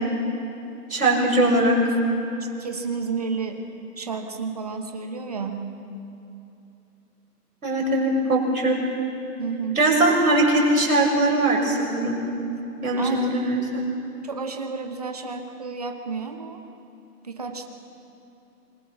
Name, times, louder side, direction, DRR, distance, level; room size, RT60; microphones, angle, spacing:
voice 1, 0.9-1.8 7.6-8.8 9.7-12.2 12.8-13.8, right 1 dB, 60° right, -1 dB, 6.6 m, -21 dB
voice 2, 2.6-3.6 4.0-5.6 9.4-9.8 13.0-13.3 14.2-16.6 17.2-17.7, right 5 dB, 25° right, 5 dB, 1.2 m, -31 dB
27.0 x 21.5 x 6.0 m, 2.8 s
hypercardioid pair, 170°, 48 cm